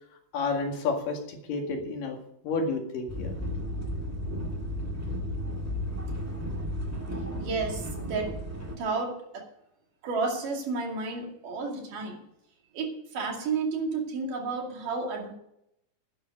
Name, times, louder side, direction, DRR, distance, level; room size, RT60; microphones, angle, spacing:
voice 1, 0.3-2.2 2.4-3.3, left 3 dB, 85° left, 2 dB, 3.8 m, -30 dB
sound 1, 3.1-8.8, equal, 10° right, 0.7 m, -33 dB
voice 2, 7.4-8.4 8.8-9.4 10.0-12.2 12.7-15.3, right 4 dB, 75° right, 1 dB, 4.1 m, -31 dB
11.0 x 10.5 x 6.6 m, 0.75 s
omnidirectional pair, 3.8 m